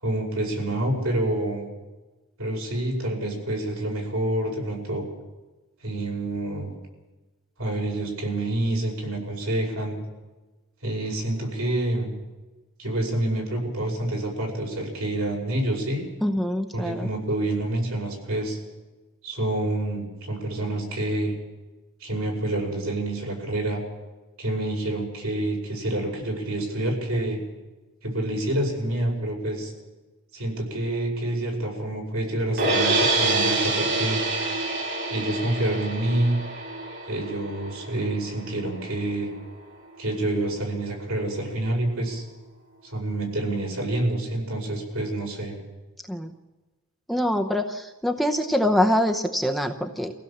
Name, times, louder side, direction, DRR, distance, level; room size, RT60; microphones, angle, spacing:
voice 1, 0.0-1.7 2.4-5.1 5.8-6.7 7.6-10.0 10.8-12.1 12.8-16.0 16.7-18.6 19.2-21.4 22.0-23.8 24.4-27.4 28.0-29.7 30.3-34.2 35.1-36.4 37.1-39.3 40.0-42.2 42.8-45.6, right 1 dB, 75° right, 0 dB, 5.5 m, -27 dB
voice 2, 16.2-17.1 46.1-46.3 47.1-50.1, left 1 dB, ahead, 5 dB, 0.8 m, -24 dB
sound 1, 32.6-38.7, right 2 dB, 50° right, 3.3 m, -26 dB
24.5 x 16.0 x 7.2 m, 1.2 s
head